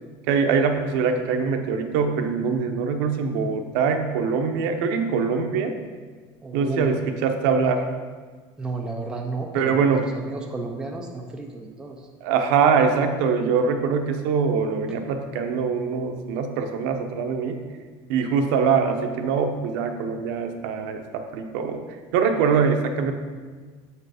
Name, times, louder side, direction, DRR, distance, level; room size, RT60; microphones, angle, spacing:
voice 1, 0.3-5.8 6.5-7.8 9.5-10.0 12.2-17.6 18.1-21.8 22.1-23.1, right 5 dB, 70° right, 5 dB, 0.8 m, -23 dB
voice 2, 6.4-6.9 8.6-12.0, right 2 dB, 5° right, 1 dB, 0.4 m, -32 dB
6.9 x 4.6 x 4.9 m, 1.5 s
cardioid pair, 180°, 12 cm